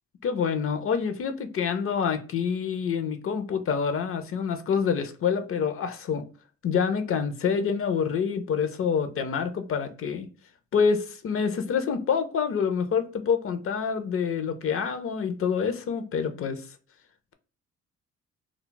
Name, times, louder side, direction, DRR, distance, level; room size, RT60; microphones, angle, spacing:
voice 1, 0.2-6.2 6.6-10.3 10.7-16.7, left 6 dB, 45° left, 0.5 m, -27 dB
2.3 x 2.0 x 3.7 m
cardioid pair, 90°, 30 cm